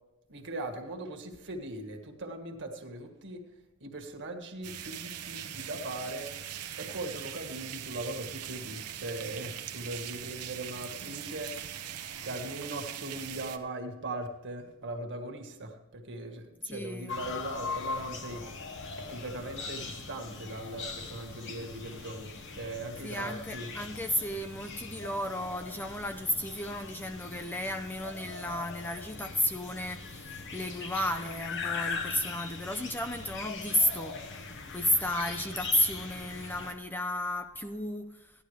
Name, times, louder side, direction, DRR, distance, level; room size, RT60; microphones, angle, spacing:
voice 1, 0.3-3.4 3.8-6.3 6.8-11.6 12.2-18.4 19.0-23.7, right 2 dB, 55° right, 3 dB, 1.6 m, -39 dB
sound 1, 4.6-13.6, right 10 dB, 90° right, 0.9 m, -41 dB
voice 2, 16.6-17.1 23.0-34.2 34.7-38.3, left 1 dB, 10° left, 6 dB, 0.5 m, -33 dB
sound 2, 17.1-36.7, left 4 dB, 55° left, 1.2 m, -41 dB
15.5 x 11.5 x 3.3 m, 1.0 s
head